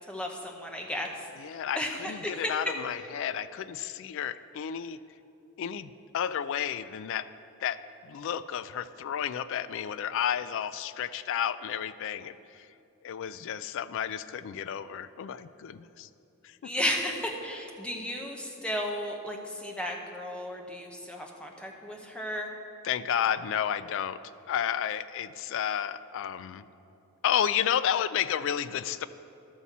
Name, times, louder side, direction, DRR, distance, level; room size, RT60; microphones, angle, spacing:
voice 1, 0.1-1.1 1.8-2.5 16.6-22.5, equal, 5° left, 1 dB, 0.8 m, -34 dB
voice 2, 1.4-5.0 5.6-7.3 7.6-12.7 13.0-16.1 16.4-16.6 22.8-24.2 24.5-26.6 27.2-29.1, left 9 dB, 60° left, 15 dB, 0.3 m, -31 dB
12.0 x 4.2 x 7.2 m, 2.8 s
head